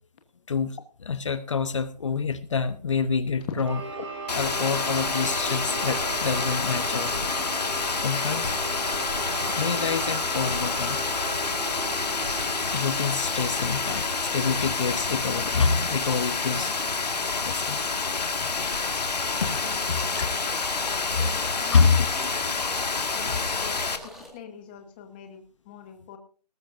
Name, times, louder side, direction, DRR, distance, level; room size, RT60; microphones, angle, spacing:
voice 1, 0.5-3.8 4.3-7.3 8.0-9.1 9.4-11.0 12.7-17.8 18.8-19.6 19.9-20.5 21.1-22.1 23.3-23.4, left 5 dB, 45° left, 13 dB, 0.9 m, -27 dB
sound 1, 3.6-19.3, right 3 dB, 40° right, 5.6 m, -37 dB
Rain, 4.3-24.0, left 4 dB, 70° left, 1.9 m, -28 dB
sound 2, 18.6-24.3, equal, ahead, 1.8 m, -44 dB
voice 2, 19.6-20.5 21.1-21.8 22.1-22.7 23.1-26.2, left 8 dB, 15° left, 6 dB, 1.1 m, -43 dB
19.0 x 14.0 x 2.6 m, 0.40 s
hypercardioid pair, 165°, 21 cm